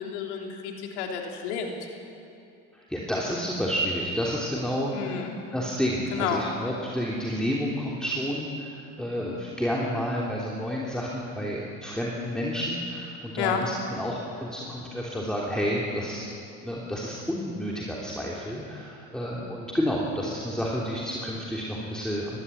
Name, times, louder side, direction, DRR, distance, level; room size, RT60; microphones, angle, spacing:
voice 1, 0.0-1.8 4.9-5.3 6.1-6.5 13.4-13.6, left 7 dB, 85° left, 1 dB, 3.3 m, -30 dB
voice 2, 2.7-5.3 5.5-16.3 16.6-22.4, equal, ahead, -4 dB, 3.3 m, -30 dB
20.5 x 15.0 x 9.5 m, 2.6 s
supercardioid pair, 85°, 33 cm